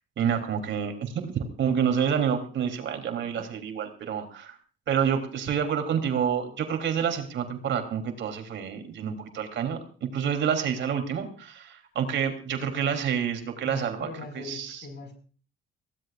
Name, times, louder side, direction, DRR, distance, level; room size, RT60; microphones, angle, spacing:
voice 1, 0.2-4.6 4.9-14.1 14.3-14.9, right 8 dB, 60° right, 5 dB, 3.2 m, -28 dB
voice 2, 13.6-15.1, left 4 dB, 55° left, 6 dB, 5.1 m, -41 dB
23.0 x 16.5 x 2.4 m, 0.40 s
supercardioid pair, 75°, 21 cm